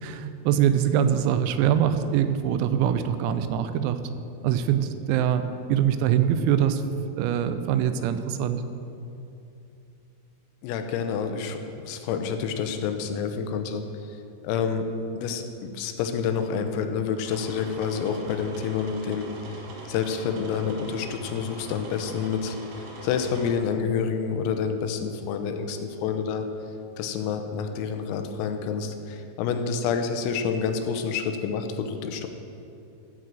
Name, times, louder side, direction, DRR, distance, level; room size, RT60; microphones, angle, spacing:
voice 1, 0.0-4.0 4.4-5.4 5.7-6.8 7.1-8.6, right 9 dB, 90° right, 10 dB, 3.5 m, -23 dB
voice 2, 10.6-14.2 14.4-14.8 15.2-19.3 19.9-26.5 27.0-32.3, left 6 dB, 85° left, 6 dB, 3.6 m, -28 dB
sound 1, 17.2-23.5, right 2 dB, 75° right, 3.9 m, -41 dB
15.0 x 6.3 x 7.6 m, 2.7 s
omnidirectional pair, 6.0 m